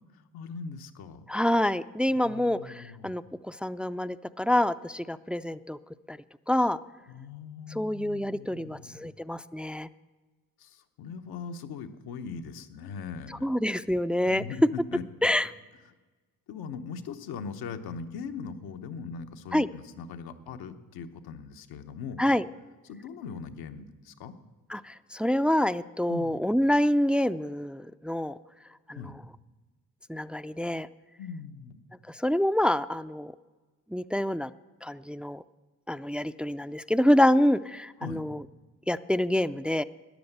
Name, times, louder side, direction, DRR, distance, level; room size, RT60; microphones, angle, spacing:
voice 1, 0.3-1.2 2.1-3.1 7.1-9.1 10.6-13.5 14.3-15.0 16.5-22.3 22.8-24.4 26.1-26.4 28.9-29.1 31.2-31.8 38.0-38.2, left 5 dB, 85° left, 8 dB, 1.0 m, -40 dB
voice 2, 1.3-5.8 6.1-6.2 6.5-6.8 7.8-9.9 13.4-14.4 15.2-15.5 19.5-19.7 22.2-22.4 24.7-28.4 28.9-29.0 30.1-30.9 32.1-33.3 33.9-34.5 34.8-35.4 35.9-38.4 38.9-39.8, left 1 dB, 5° right, 13 dB, 0.4 m, -26 dB
13.5 x 9.9 x 8.0 m, 1.3 s
supercardioid pair, 65°, 36 cm